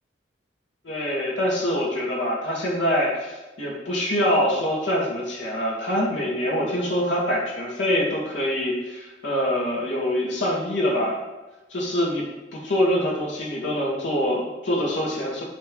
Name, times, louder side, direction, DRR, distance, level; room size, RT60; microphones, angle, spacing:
voice 1, 0.8-11.2 11.7-12.3 12.5-15.4, equal, 90° left, -3 dB, 2.1 m, -25 dB
7.3 x 3.5 x 6.1 m, 1.1 s
head